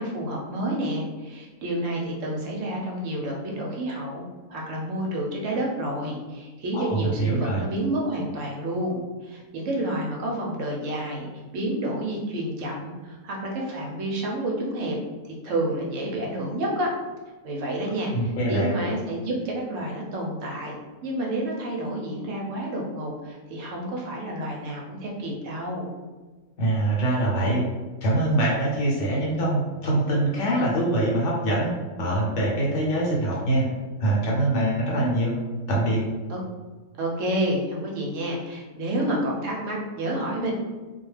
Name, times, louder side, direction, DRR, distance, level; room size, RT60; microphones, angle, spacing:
voice 1, 0.0-14.9 15.2-16.9 17.4-20.8 21.0-25.9 36.3-36.4 37.0-40.5, right 1 dB, 70° right, -2 dB, 0.8 m, -29 dB
voice 2, 6.7-7.6 18.1-18.7 26.6-27.6 28.0-31.7 32.0-33.7 34.0-35.4 35.7-36.0, right 1 dB, 65° left, -4 dB, 0.9 m, -24 dB
2.4 x 2.2 x 3.1 m, 1.3 s
omnidirectional pair, 1.5 m